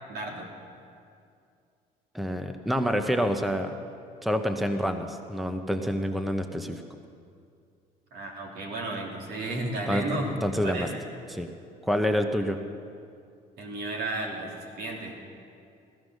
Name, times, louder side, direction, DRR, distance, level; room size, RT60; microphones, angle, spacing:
voice 1, 0.1-0.5 8.1-10.3 10.6-11.0 13.6-15.2, right 2 dB, 70° right, 0 dB, 3.0 m, -33 dB
voice 2, 2.1-3.7 4.2-6.8 9.9-10.1 10.4-10.9 11.3-11.5 11.8-12.6, equal, ahead, 7 dB, 0.7 m, -27 dB
16.5 x 13.0 x 6.3 m, 2.4 s
cardioid pair, 110°, 17 cm